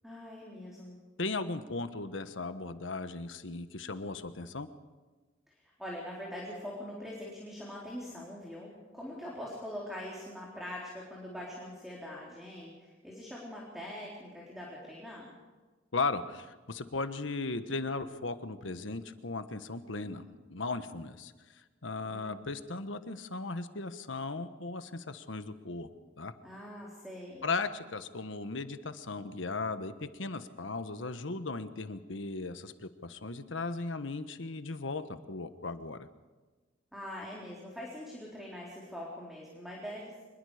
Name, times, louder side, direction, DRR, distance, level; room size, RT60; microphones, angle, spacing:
voice 1, 0.0-1.0 5.8-15.3 22.0-22.2 26.4-27.5 36.9-40.2, left 1 dB, ahead, -4 dB, 3.9 m, -43 dB
voice 2, 1.2-4.7 15.9-21.3 21.8-25.9 26.2-26.3 27.4-36.1, left 3 dB, 75° left, 10 dB, 1.3 m, -37 dB
25.5 x 21.5 x 5.0 m, 1.3 s
head